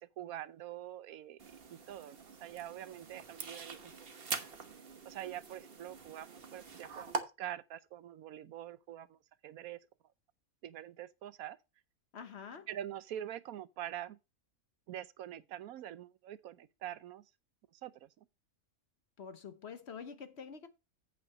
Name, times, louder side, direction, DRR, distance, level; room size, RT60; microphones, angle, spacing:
voice 1, 0.0-3.9 4.3-4.6 5.0-9.8 10.6-11.6 12.7-14.2 14.9-17.2 17.7-18.1, right 11 dB, 80° right, 1.1 m, -45 dB
sound 1, 1.4-7.2, right 5 dB, 45° right, 1.2 m, -44 dB
voice 2, 12.1-12.7 19.2-20.7, left 6 dB, 55° left, 1.1 m, -47 dB
8.6 x 5.6 x 5.4 m
omnidirectional pair, 1.5 m